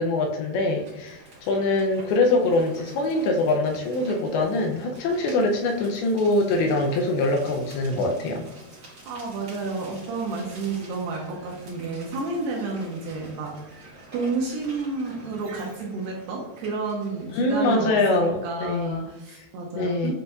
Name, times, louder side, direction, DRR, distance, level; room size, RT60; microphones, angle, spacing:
voice 1, 0.0-8.5 17.3-19.1 19.8-20.1, left 2 dB, 80° left, 2 dB, 2.3 m, -23 dB
sound 1, 0.6-17.9, right 1 dB, 60° right, 1.1 m, -48 dB
voice 2, 9.1-13.8 14.1-20.1, right 3 dB, 80° right, -1 dB, 2.2 m, -31 dB
7.6 x 2.6 x 2.3 m, 1.0 s
omnidirectional pair, 4.6 m